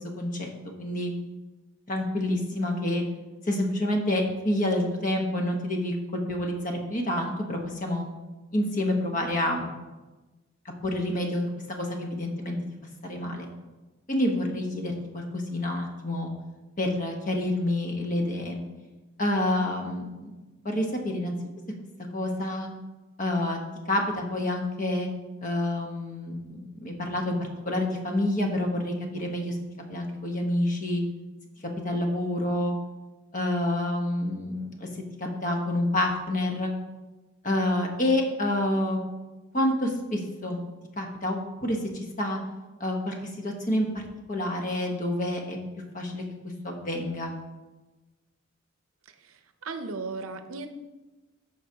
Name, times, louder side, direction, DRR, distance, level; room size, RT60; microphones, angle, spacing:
voice 1, 0.2-0.5 0.8-1.1 1.9-3.0 3.5-8.1 8.5-9.7 10.8-12.6 13.0-13.5 14.1-16.3 16.8-18.6 19.2-20.3 20.6-21.3 22.1-22.7 23.2-23.6 23.9-25.1 25.4-27.4 27.6-29.6 29.9-31.0 31.8-32.7 33.3-34.9 35.2-36.7 37.4-39.0 39.5-40.6 41.0-41.8 42.2-42.4 42.8-45.6 45.9-46.2 46.6-47.3, left 1 dB, 40° left, 2 dB, 1.1 m, -28 dB
voice 2, 49.1-50.7, right 3 dB, 90° right, 8 dB, 0.7 m, -37 dB
13.5 x 4.8 x 2.9 m, 1.2 s
head